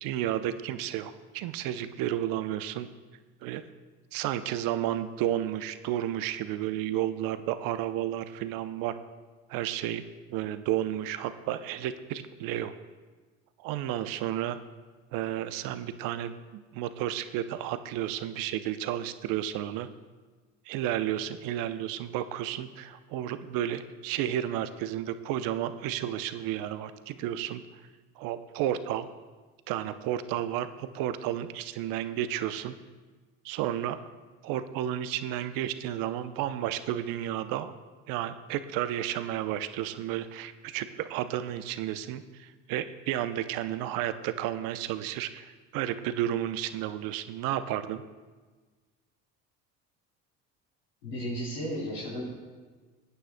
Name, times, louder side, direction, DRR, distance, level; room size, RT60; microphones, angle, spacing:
voice 1, 0.0-2.9 3.4-3.6 4.1-8.9 9.5-10.0 10.3-12.7 13.6-14.6 15.1-19.9 20.7-27.6 28.2-29.1 29.7-32.8 33.4-34.0 34.4-37.7 38.1-48.0, right 12 dB, 70° right, 11 dB, 0.7 m, -32 dB
voice 2, 51.0-52.3, equal, 90° left, -10 dB, 3.4 m, -34 dB
21.0 x 9.1 x 2.2 m, 1.4 s
hypercardioid pair, 65°, 35 cm